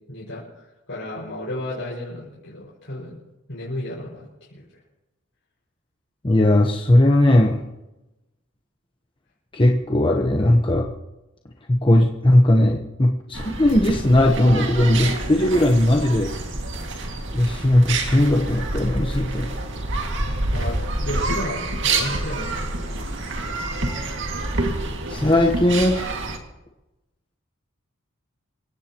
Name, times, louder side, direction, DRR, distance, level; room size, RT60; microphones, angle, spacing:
voice 1, 0.1-3.2 3.5-4.7 20.5-22.7, left 1 dB, 60° left, -7 dB, 5.6 m, -33 dB
voice 2, 6.2-7.6 9.5-10.9 11.7-16.3 17.3-19.5 25.1-26.2, left 1 dB, 25° left, 1 dB, 1.0 m, -18 dB
sound 1, 13.3-26.4, right 2 dB, 60° right, 2.2 m, -27 dB
28.0 x 16.5 x 3.0 m, 1.0 s
head